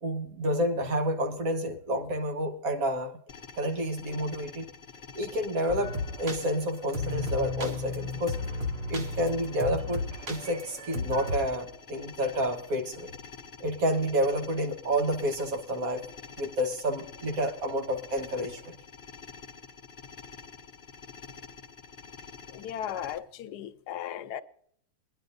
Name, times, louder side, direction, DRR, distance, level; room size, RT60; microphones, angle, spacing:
voice 1, 0.0-3.1 3.6-4.7 5.2-8.4 8.9-13.1 13.6-16.0 16.4-18.7, equal, 60° right, 1.6 m, -29 dB
sound 1, 3.3-23.2, left 5 dB, 50° left, 0.6 m, -47 dB
sound 2, 5.7-11.5, left 2 dB, 45° right, 1.3 m, -34 dB
voice 2, 22.5-24.4, left 10 dB, 85° left, 1.2 m, -36 dB
21.5 x 10.5 x 2.6 m
omnidirectional pair, 1.7 m